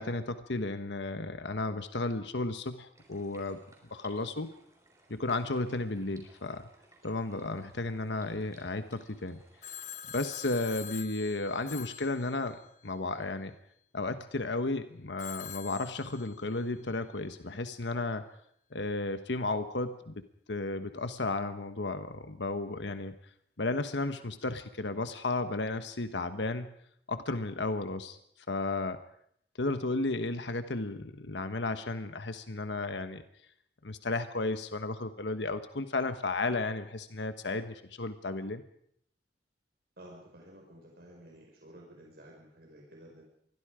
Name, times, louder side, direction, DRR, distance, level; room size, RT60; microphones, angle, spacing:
voice 1, 0.0-3.6 3.9-4.5 5.1-6.6 7.0-9.4 10.1-12.6 12.8-13.5 13.9-18.2 18.7-20.2 20.5-23.1 23.6-26.7 27.1-28.2 28.5-29.0 29.6-33.2 33.8-38.6, left 2 dB, 85° left, 9 dB, 1.2 m, -33 dB
sound 1, 2.9-10.0, right 2 dB, 20° right, 5.3 m, -61 dB
Telephone, 9.6-12.9 15.2-16.7, left 9 dB, 45° left, 0.9 m, -45 dB
voice 2, 40.0-43.2, right 1 dB, 60° right, -1 dB, 5.5 m, -52 dB
26.5 x 21.5 x 5.0 m, 0.69 s
head